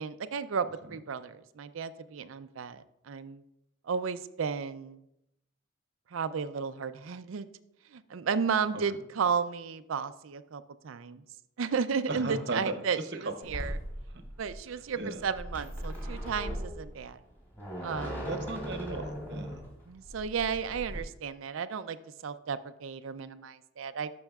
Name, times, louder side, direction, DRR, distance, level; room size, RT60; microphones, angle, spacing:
voice 1, 0.0-3.4 3.8-5.0 6.1-7.5 7.9-11.2 11.6-13.8 14.4-17.2 17.8-18.3 19.9-22.0 22.2-24.1, right 6 dB, 85° right, 13 dB, 0.4 m, -33 dB
voice 2, 12.1-12.7 13.4-13.5 15.0-15.3 18.3-19.6, right 2 dB, 55° right, 7 dB, 0.8 m, -35 dB
sound 1, 13.4-21.0, equal, 10° left, 2.3 m, -39 dB
14.5 x 6.2 x 2.4 m, 0.83 s
head